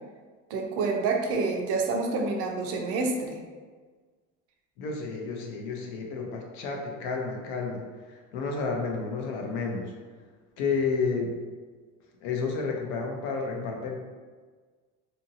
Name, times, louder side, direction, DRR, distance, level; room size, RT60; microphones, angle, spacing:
voice 1, 0.5-3.4, right 3 dB, 50° right, 2 dB, 0.4 m, -28 dB
voice 2, 4.8-9.9 10.6-11.3 12.2-14.0, left 4 dB, 65° left, 1 dB, 0.6 m, -31 dB
2.7 x 2.6 x 2.7 m, 1.5 s
cardioid pair, 170°, 31 cm